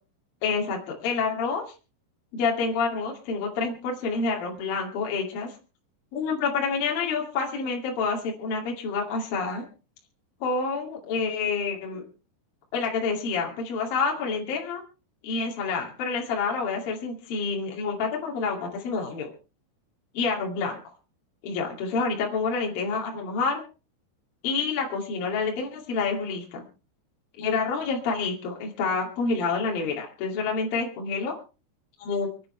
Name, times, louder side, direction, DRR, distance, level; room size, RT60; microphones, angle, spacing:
voice 1, 0.4-1.7 2.3-5.5 6.1-9.7 10.4-12.0 12.7-14.8 15.2-19.3 20.1-20.8 21.4-23.6 24.4-26.6 27.4-31.3 32.0-32.3, left 4 dB, 55° left, 0 dB, 3.7 m, -28 dB
28.5 x 9.7 x 3.2 m, 0.34 s
omnidirectional pair, 5.6 m